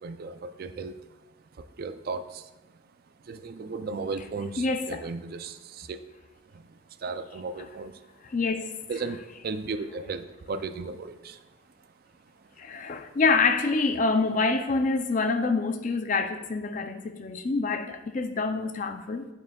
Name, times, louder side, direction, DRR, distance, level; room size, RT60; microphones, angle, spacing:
voice 1, 0.0-1.0 1.6-2.5 3.3-6.0 6.5-6.7 7.0-8.0 8.9-11.4, right 4 dB, 45° right, 0.3 m, -35 dB
voice 2, 4.6-5.1 7.6-7.7 8.2-8.7 12.6-19.3, left 4 dB, 40° left, 0.4 m, -26 dB
8.7 x 6.8 x 2.3 m
head